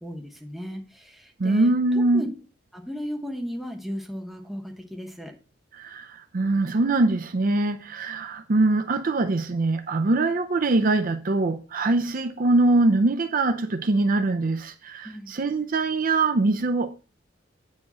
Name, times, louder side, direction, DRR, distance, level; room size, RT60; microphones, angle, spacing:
voice 1, 0.0-1.7 2.1-2.3 2.7-5.3 15.0-15.3, equal, ahead, 1.1 m, -35 dB
voice 2, 1.4-2.2 5.7-17.1, right 2 dB, 45° right, 0.5 m, -23 dB
8.6 x 4.7 x 4.2 m
head